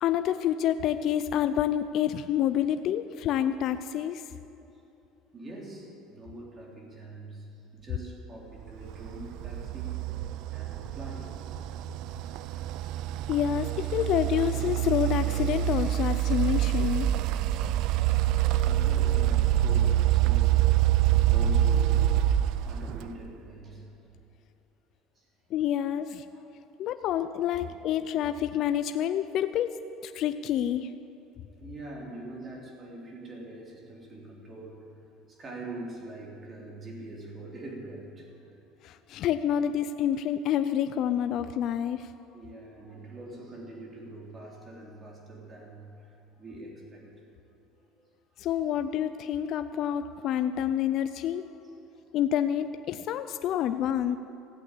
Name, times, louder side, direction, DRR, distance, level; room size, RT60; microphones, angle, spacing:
voice 1, 0.0-4.2 13.3-17.1 25.5-26.2 26.8-29.7 30.0-30.9 38.8-42.1 48.4-51.5 52.1-54.2, left 10 dB, 55° left, 10 dB, 0.5 m, -28 dB
voice 2, 5.3-11.3 18.6-20.6 21.1-23.9 25.2-25.3 26.3-26.6 27.5-27.6 31.6-34.8 35.3-38.6 42.3-47.2 47.8-48.1 51.8-52.0, right 2 dB, 30° right, -2 dB, 3.5 m, -44 dB
sound 1, 8.8-23.3, right 12 dB, 65° right, 0.4 m, -26 dB
15.0 x 8.5 x 8.6 m, 2.9 s
supercardioid pair, 120°, 0 cm